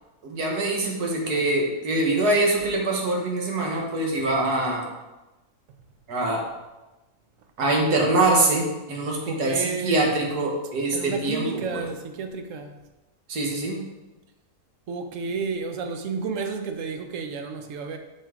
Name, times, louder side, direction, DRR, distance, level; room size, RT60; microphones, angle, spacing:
voice 1, 0.2-4.9 6.1-6.5 7.6-11.8 13.3-13.8, right 2 dB, 90° right, 0 dB, 1.8 m, -24 dB
voice 2, 9.2-10.2 10.9-12.8 14.9-18.0, right 5 dB, 60° right, 6 dB, 1.0 m, -31 dB
7.8 x 4.6 x 3.7 m, 1.0 s
omnidirectional pair, 1.6 m